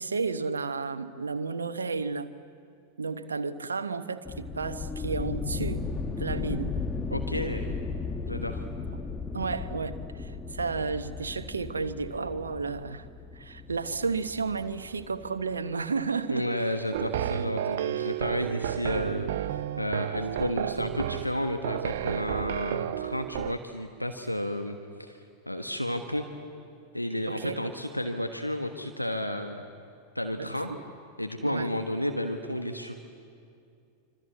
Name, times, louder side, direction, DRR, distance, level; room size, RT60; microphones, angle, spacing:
voice 1, 0.0-2.3 3.0-5.9 6.2-6.7 9.3-13.1 13.3-16.6 27.3-27.6 30.4-30.8 31.4-31.7, right 4 dB, 75° right, 1.0 m, -32 dB
sound 1, 4.3-15.7, left 4 dB, 15° left, 1.6 m, -36 dB
voice 2, 7.1-7.7 8.3-8.6 16.3-25.2 25.5-26.2 26.9-29.6 30.1-30.7 31.2-32.9, left 1 dB, 90° left, 1.3 m, -32 dB
sound 2, 16.9-23.6, right 11 dB, 55° right, 0.6 m, -32 dB
26.5 x 25.5 x 8.6 m
figure-of-eight pair, 90°, 0 cm